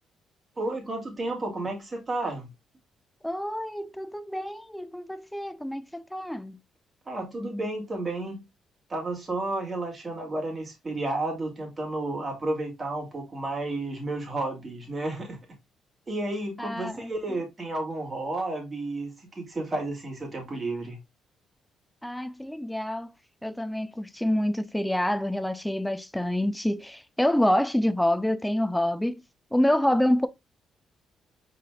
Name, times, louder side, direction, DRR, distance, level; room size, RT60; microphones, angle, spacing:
voice 1, 0.6-2.5 7.1-8.4 8.9-15.4 16.1-21.0, right 2 dB, 30° right, 2.4 m, -32 dB
voice 2, 3.2-6.6 16.6-17.1 22.0-23.1 23.4-29.2 29.5-30.3, left 1 dB, 5° left, 0.5 m, -27 dB
5.2 x 4.1 x 2.3 m
cardioid pair, 90°, 0 cm